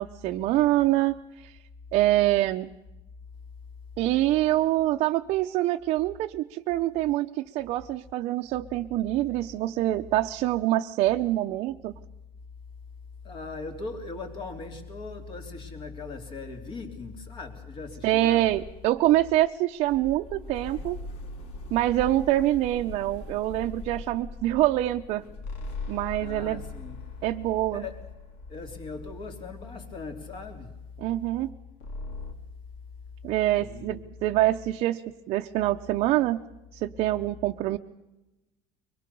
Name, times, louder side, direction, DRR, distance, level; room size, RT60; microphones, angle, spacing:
voice 1, 0.0-1.5 1.9-2.7 4.0-11.9 18.0-21.0 21.7-25.2 25.9-26.6 27.2-27.8 31.0-31.5 33.2-35.0 35.3-36.4 36.7-37.8, right 15 dB, 50° right, 0.8 m, -25 dB
voice 2, 13.2-18.5 26.2-27.2 27.7-28.1 28.5-30.8 33.6-34.1, left 3 dB, 40° left, 3.5 m, -39 dB
sound 1, 18.4-30.0 30.3-34.0, left 2 dB, 55° left, 4.1 m, -43 dB
sound 2, 25.4-29.9 31.8-32.3, left 3 dB, 70° left, 2.8 m, -42 dB
24.0 x 22.0 x 6.9 m
cardioid pair, 155°, 13 cm